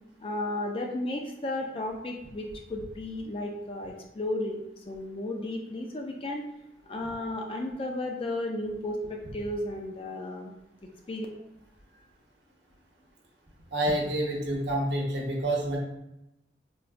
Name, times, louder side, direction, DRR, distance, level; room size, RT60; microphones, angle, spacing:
voice 1, 0.2-6.4 6.9-10.6 11.1-11.3, left 1 dB, 30° left, 2 dB, 0.3 m, -34 dB
voice 2, 13.7-15.8, right 1 dB, 85° right, -1 dB, 0.8 m, -28 dB
3.8 x 2.2 x 2.4 m, 0.87 s
head